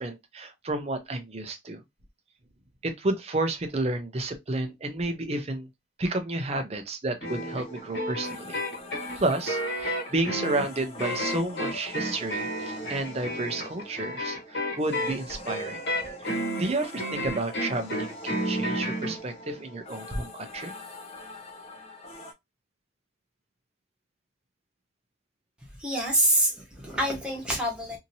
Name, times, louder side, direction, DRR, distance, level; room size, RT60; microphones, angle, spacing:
voice 1, 0.0-1.8 2.8-5.7 6.0-8.6 9.1-15.8 16.2-20.7, right 2 dB, 35° right, 0.6 m, -31 dB
sound 1, 7.2-19.2, equal, 55° left, 1.2 m, -32 dB
sound 2, 7.2-22.3, left 1 dB, 30° left, 0.6 m, -44 dB
voice 2, 25.8-28.0, right 1 dB, 5° right, 1.1 m, -26 dB
2.8 x 2.7 x 2.6 m
head